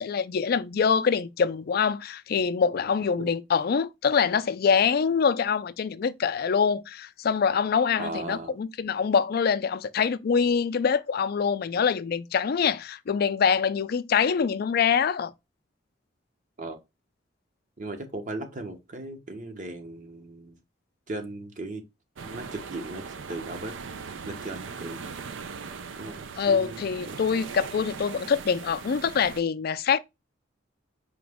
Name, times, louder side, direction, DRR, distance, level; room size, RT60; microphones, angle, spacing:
voice 1, 0.0-15.3 26.4-30.0, left 6 dB, 55° left, 0.4 m, -25 dB
voice 2, 8.0-8.5 16.6-16.8 17.8-20.6 21.1-21.9 22.2-23.8 24.2-25.0 26.0-27.2, right 2 dB, 45° right, 0.9 m, -37 dB
sound 1, 22.2-29.4, right 5 dB, 80° right, 0.5 m, -40 dB
5.0 x 2.9 x 3.5 m
head